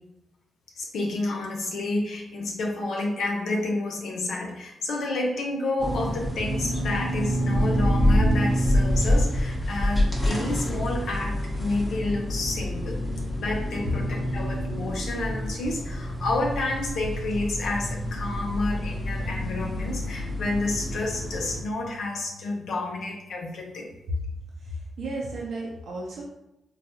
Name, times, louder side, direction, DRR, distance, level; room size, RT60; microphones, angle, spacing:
voice 1, 0.8-13.0 13.4-23.9, left 2 dB, 70° left, -1 dB, 0.4 m, -30 dB
sound 1, 5.8-21.6, equal, 10° left, 0.9 m, -27 dB
sound 2, 18.3-23.3, left 9 dB, 55° left, 0.9 m, -45 dB
voice 2, 24.6-26.2, right 1 dB, 75° right, -4 dB, 0.6 m, -33 dB
3.9 x 2.3 x 2.8 m, 0.88 s
hypercardioid pair, 45°, 0 cm